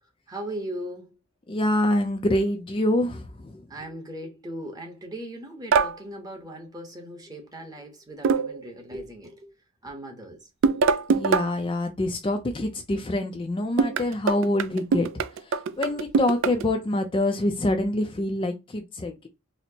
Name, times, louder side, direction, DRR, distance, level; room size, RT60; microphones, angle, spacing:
voice 1, 0.3-1.2 3.7-9.5 9.8-10.5, right 1 dB, 20° right, 0.9 m, -38 dB
voice 2, 1.5-3.7 11.1-15.1 15.4-19.3, left 1 dB, 25° left, 0.4 m, -26 dB
sound 1, 5.7-6.0 8.2-8.7 10.6-11.5 13.8-16.7, right 5 dB, 65° right, 0.3 m, -23 dB
4.2 x 2.0 x 2.7 m
head